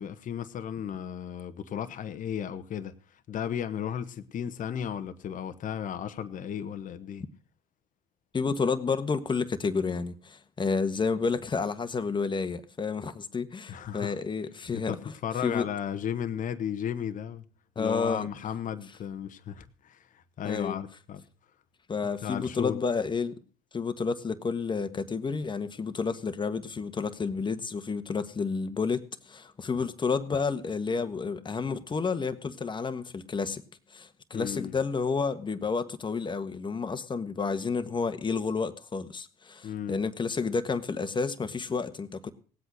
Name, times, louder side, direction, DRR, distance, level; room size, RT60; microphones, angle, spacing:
voice 1, 0.0-2.9 3.3-7.2 13.7-14.2 14.7-17.4 17.8-21.2 22.2-22.8 34.3-34.8 39.6-40.0, left 9 dB, 45° left, 1.2 m, -34 dB
voice 2, 8.3-14.9 15.4-15.7 17.7-18.3 20.4-20.8 21.9-23.4 23.7-33.6 33.9-42.3, left 5 dB, 25° left, 1.5 m, -30 dB
18.0 x 8.1 x 6.3 m
hypercardioid pair, 70°, 18 cm